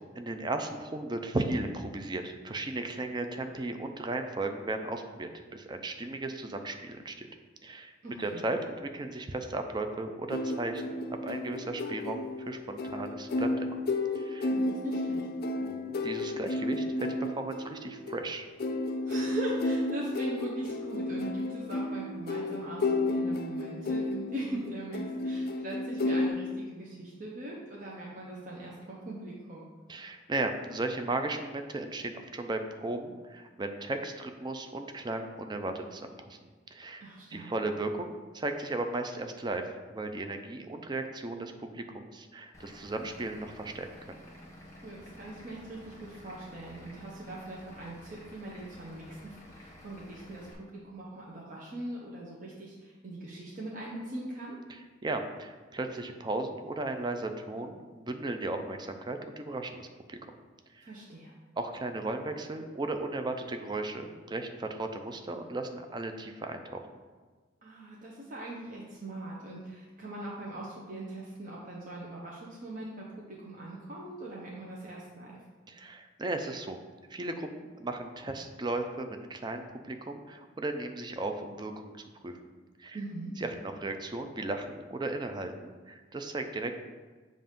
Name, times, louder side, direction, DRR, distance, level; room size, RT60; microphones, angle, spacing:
voice 1, 0.1-7.3 7.6-7.9 8.2-13.8 14.2-14.5 15.6-18.5 29.9-36.4 36.7-44.2 54.7-60.2 60.7-60.9 61.6-66.9 75.7-76.8 77.1-81.9 82.2-82.4 82.8-83.0 83.4-86.7, right 2 dB, 20° right, 6 dB, 0.4 m, -36 dB
voice 2, 8.0-8.5 14.5-15.3 19.0-29.7 37.0-37.5 44.8-54.6 60.8-61.3 67.6-75.4 82.9-83.3, right 1 dB, 45° right, -4 dB, 0.8 m, -41 dB
sound 1, 10.3-26.3, left 2 dB, 50° left, 0.4 m, -32 dB
Vehicle / Engine, 42.5-50.5, left 1 dB, 15° left, 1.0 m, -51 dB
7.6 x 2.5 x 5.2 m, 1.4 s
head